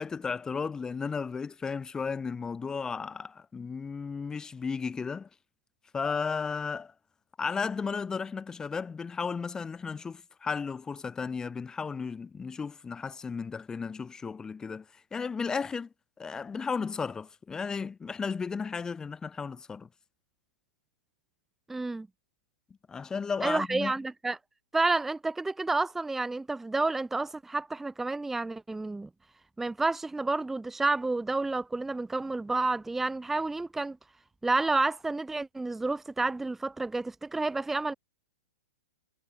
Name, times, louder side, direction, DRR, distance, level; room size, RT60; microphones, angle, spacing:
voice 1, 0.0-5.3 5.9-6.9 7.4-19.9 22.9-23.9, left 5 dB, 15° left, 1.1 m, -34 dB
voice 2, 21.7-22.1 23.4-24.4 24.7-29.1 29.6-34.0 34.4-37.9, right 3 dB, 5° right, 0.4 m, -30 dB
hypercardioid pair, 115°, 5 cm